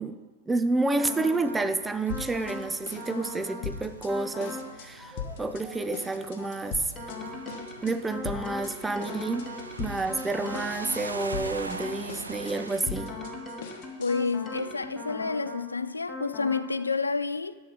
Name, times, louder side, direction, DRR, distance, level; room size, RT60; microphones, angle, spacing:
voice 1, 0.0-6.9 7.8-13.1, right 3 dB, 10° right, 0.6 m, -30 dB
sound 1, 1.0-1.7 2.1-2.7 3.0-3.7 4.1-4.7 5.0-12.0 12.5-15.7 16.1-16.7, left 2 dB, 10° left, 1.8 m, -40 dB
sound 2, 1.3-12.8, right 3 dB, 80° right, 0.7 m, -43 dB
sound 3, 2.1-2.6 2.9-4.1 4.4-4.9 5.2-5.6 5.9-7.2 7.5-7.9 8.2-8.7 9.0-10.3 10.5-11.0 11.3-14.3, left 7 dB, 50° left, 1.1 m, -40 dB
voice 2, 14.0-17.5, left 4 dB, 80° left, 0.4 m, -29 dB
12.0 x 6.3 x 5.0 m
figure-of-eight pair, 90°, 0 cm